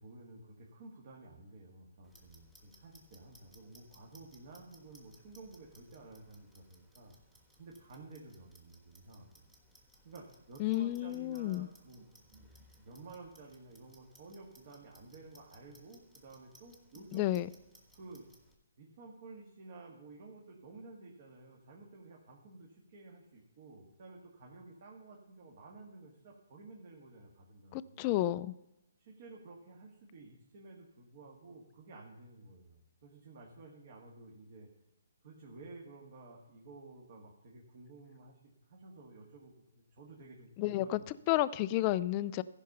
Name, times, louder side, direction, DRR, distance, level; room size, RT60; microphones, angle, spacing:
voice 1, 0.0-7.1 7.5-9.4 10.0-17.4 17.9-18.3 18.8-28.1 29.0-34.7 35.2-38.4 38.7-41.1, right 3 dB, 45° right, -2 dB, 2.0 m, -53 dB
Clock, 2.0-18.5, equal, 5° right, 1.4 m, -64 dB
voice 2, 10.6-11.7 17.1-17.5 27.7-28.5 40.6-42.4, left 15 dB, 25° left, 14 dB, 0.3 m, -31 dB
14.5 x 5.3 x 5.5 m, 0.88 s
hypercardioid pair, 150°, 0 cm